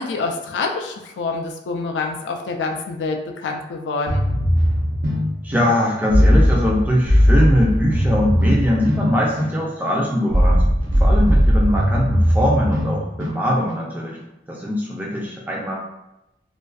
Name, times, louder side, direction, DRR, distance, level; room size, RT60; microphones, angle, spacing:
voice 1, 0.0-4.2, left 3 dB, 75° left, 3 dB, 0.3 m, -26 dB
sound 1, 4.1-13.9, equal, 75° right, 0.5 m, -19 dB
voice 2, 5.4-10.6 11.0-14.2 14.5-15.7, equal, 10° right, -4 dB, 0.4 m, -21 dB
2.4 x 2.2 x 2.3 m, 0.92 s
head